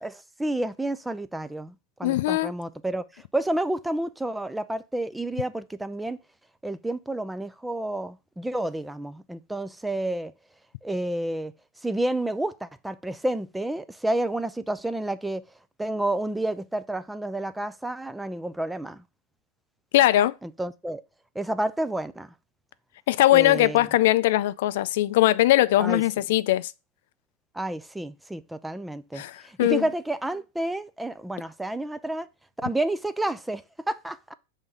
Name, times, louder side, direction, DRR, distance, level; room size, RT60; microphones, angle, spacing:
voice 1, 0.0-6.2 6.6-10.3 10.8-11.5 11.8-15.4 15.8-19.0 20.4-21.0 21.4-22.3 23.3-23.9 25.8-26.0 27.5-32.3 32.6-33.6 33.9-34.3, right 1 dB, 5° right, 0.4 m, -30 dB
voice 2, 2.0-2.5 19.9-20.3 23.1-26.7 29.1-29.8, left 15 dB, 65° left, 0.3 m, -20 dB
5.4 x 3.6 x 5.3 m
hypercardioid pair, 120°, 0 cm